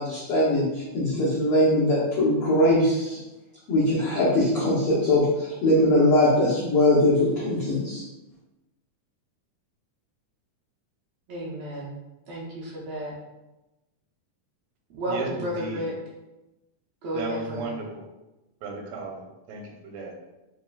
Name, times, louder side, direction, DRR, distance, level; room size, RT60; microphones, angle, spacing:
voice 1, 0.0-3.2 3.7-8.0, left 1 dB, 90° left, -8 dB, 1.2 m, -21 dB
voice 2, 11.3-11.9 12.3-13.1 15.0-15.9 17.0-17.7, equal, 70° right, -6 dB, 1.6 m, -32 dB
voice 3, 15.1-15.8 17.1-18.0 18.6-19.2 19.5-20.1, right 2 dB, 90° right, 1 dB, 2.3 m, -34 dB
4.8 x 3.2 x 2.3 m, 1.0 s
omnidirectional pair, 3.8 m